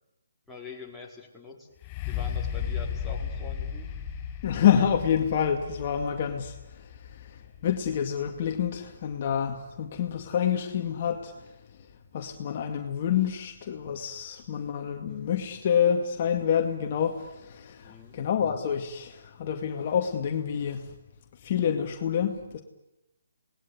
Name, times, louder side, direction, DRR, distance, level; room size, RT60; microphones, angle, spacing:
voice 1, 0.5-4.0 17.8-18.2, left 4 dB, ahead, -6 dB, 4.8 m, -44 dB
sound 1, 1.8-9.5 10.2-10.3, left 8 dB, 25° left, 6.9 m, -36 dB
voice 2, 4.4-6.9 7.1-7.2 7.6-11.3 12.1-20.8 21.4-22.6, left 8 dB, 40° left, 4 dB, 2.1 m, -27 dB
28.0 x 20.0 x 9.8 m, 0.93 s
hypercardioid pair, 150°, 0 cm